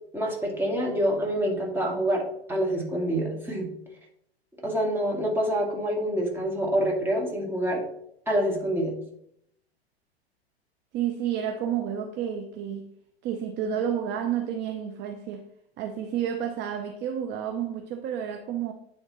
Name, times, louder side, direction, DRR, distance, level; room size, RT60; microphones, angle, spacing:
voice 1, 0.1-3.7 4.6-7.8 8.3-8.9, equal, 5° right, 2.2 m, -26 dB
voice 2, 10.9-12.9 13.2-15.5 15.8-18.7, right 9 dB, 35° right, 0.7 m, -30 dB
9.6 x 3.6 x 4.2 m
hypercardioid pair, 100°, 32 cm